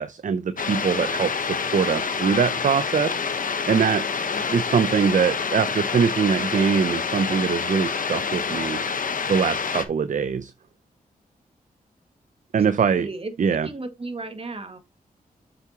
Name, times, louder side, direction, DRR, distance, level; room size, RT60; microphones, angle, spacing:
voice 1, 0.0-4.1 4.4-8.8 9.3-10.5 12.5-13.1 13.4-13.7, right 6 dB, 55° right, 0.6 m, -23 dB
sound 1, 0.6-9.9, left 5 dB, 60° left, 1.2 m, -27 dB
voice 2, 12.8-13.3 13.6-14.8, right 2 dB, 40° right, 2.0 m, -34 dB
7.5 x 6.9 x 2.9 m
cardioid pair, 55°, 16 cm